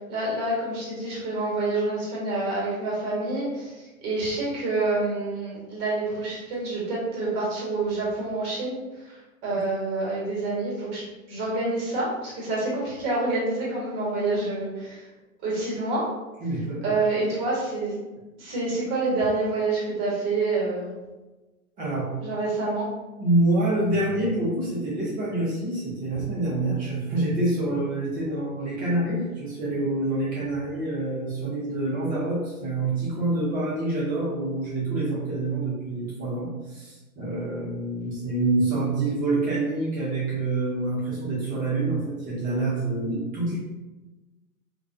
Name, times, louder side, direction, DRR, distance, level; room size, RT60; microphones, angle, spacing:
voice 1, 0.1-8.8 9.0-11.0 11.3-15.1 15.4-16.0 16.8-18.0 18.4-20.9 22.2-22.9 28.3-28.4 28.8-28.9, right 2 dB, 35° right, -5 dB, 1.1 m, -27 dB
voice 2, 16.4-16.9 21.8-22.1 23.2-43.6, right 2 dB, 20° right, -8 dB, 0.6 m, -26 dB
2.3 x 2.1 x 2.5 m, 1.1 s
hypercardioid pair, 115°, 42 cm